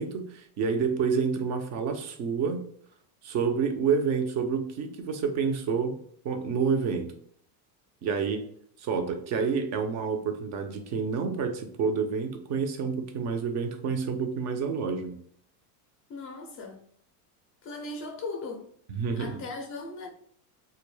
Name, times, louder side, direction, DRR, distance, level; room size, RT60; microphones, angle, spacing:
voice 1, 0.0-2.7 3.2-6.0 6.2-7.1 8.0-8.5 8.8-15.2 18.9-19.4, right 5 dB, 40° right, 0.4 m, -28 dB
voice 2, 16.1-16.8 17.6-18.7 19.2-20.1, left 3 dB, 30° left, 0.4 m, -38 dB
2.2 x 2.0 x 3.0 m
supercardioid pair, 120°, 48 cm